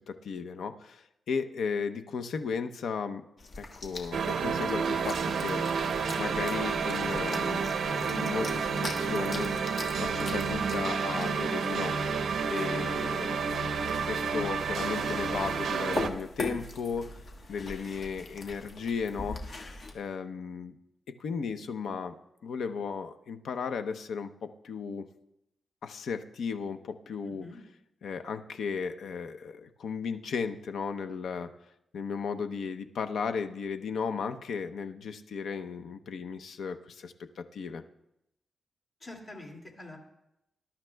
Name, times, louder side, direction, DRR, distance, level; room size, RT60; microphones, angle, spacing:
voice 1, 0.1-3.2 3.6-5.6 6.2-7.7 8.1-9.5 10.0-11.9 12.5-13.4 14.0-17.2 17.5-19.6 19.9-20.8 21.2-22.1 22.4-25.1 25.8-27.5 28.0-31.5 31.9-37.8, left 5 dB, 80° left, 9 dB, 0.7 m, -35 dB
sound 1, 3.4-19.9, left 2 dB, 45° left, 1.5 m, -42 dB
sound 2, 4.1-16.1, right 5 dB, 80° right, 0.8 m, -30 dB
voice 2, 27.2-27.6 39.0-40.0, left 2 dB, 25° left, 0 dB, 2.3 m, -45 dB
20.5 x 11.5 x 2.3 m, 0.83 s
wide cardioid pair, 155°, 0 cm